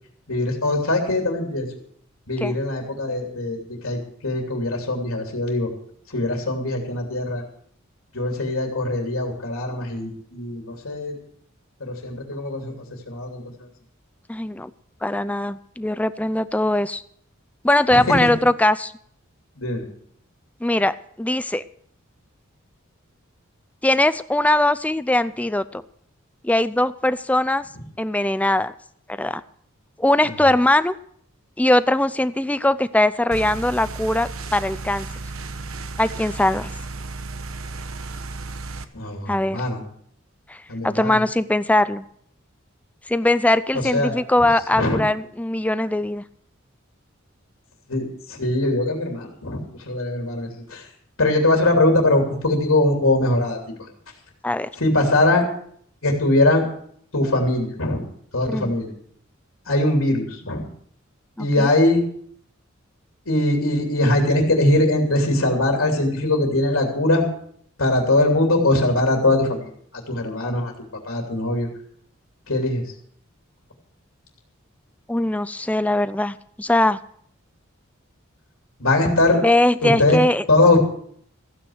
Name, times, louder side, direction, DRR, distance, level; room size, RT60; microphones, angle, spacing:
voice 1, 0.3-1.7 2.3-5.7 6.1-7.4 8.1-11.1 11.8-12.7 13.1-13.4 17.9-18.3 19.6-19.8 38.9-39.8 40.7-41.2 43.9-44.1 44.4-44.5 44.8-45.0 47.9-50.9 51.2-53.9 54.8-55.5 56.0-56.7 57.1-58.0 58.3-58.9 59.7-60.7 61.4-62.0 63.3-67.3 67.8-70.7 71.1-71.7 72.5-72.8 78.8-79.4 79.8-80.2 80.5-80.8, left 2 dB, 80° left, 1 dB, 3.0 m, -21 dB
voice 2, 14.3-14.7 15.0-17.0 17.6-18.9 20.6-21.6 23.8-25.8 26.4-27.6 28.0-28.7 29.2-29.4 30.0-31.0 31.6-35.1 36.0-36.7 39.3-39.6 40.5-42.0 43.1-46.2 54.4-54.7 58.5-58.8 61.4-61.7 75.1-77.0 79.4-80.4, left 1 dB, 5° left, 14 dB, 0.4 m, -21 dB
sound 1, 33.3-38.8, right 3 dB, 80° right, 1.1 m, -34 dB
15.0 x 9.0 x 6.4 m, 0.63 s
head